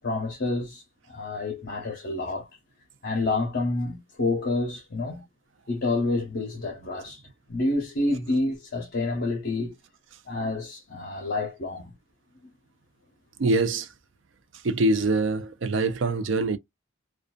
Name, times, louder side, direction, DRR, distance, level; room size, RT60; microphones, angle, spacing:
voice 1, 0.0-2.5 3.0-5.2 5.7-7.2 7.5-9.7 10.3-11.9, left 2 dB, 55° left, 0.7 m, -28 dB
voice 2, 13.4-13.9 14.6-16.6, right 2 dB, 65° right, 0.5 m, -24 dB
2.5 x 2.3 x 2.2 m
head